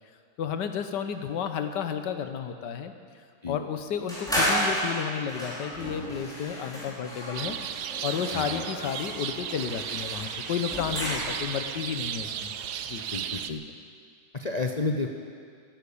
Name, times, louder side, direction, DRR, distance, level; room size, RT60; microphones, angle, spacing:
voice 1, 0.4-2.9 3.5-7.6 8.0-12.5 12.9-13.0, left 8 dB, 80° left, 8 dB, 1.6 m, -32 dB
sound 1, 4.1-11.6, equal, ahead, 4.8 m, -33 dB
sound 2, 7.3-13.5, right 9 dB, 70° right, 1.2 m, -35 dB
voice 2, 8.3-8.6 13.1-13.6 14.3-15.2, left 3 dB, 50° left, 3 dB, 0.4 m, -31 dB
15.0 x 10.5 x 8.5 m, 2.2 s
omnidirectional pair, 1.9 m